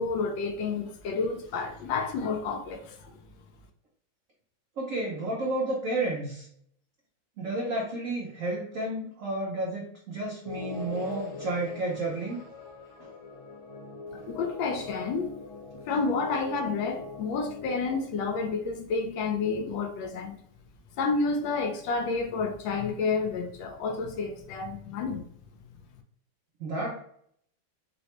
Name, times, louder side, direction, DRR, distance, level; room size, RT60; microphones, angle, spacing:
voice 1, 0.0-3.0 14.3-15.3 15.8-20.3 21.0-25.2, left 4 dB, 75° left, 1.3 m, -30 dB
voice 2, 4.8-6.5 7.4-12.4 26.6-27.0, right 2 dB, 80° right, 0.7 m, -31 dB
sound 1, 10.4-18.0, left 2 dB, 45° left, 1.1 m, -42 dB
4.0 x 2.1 x 2.9 m
omnidirectional pair, 2.2 m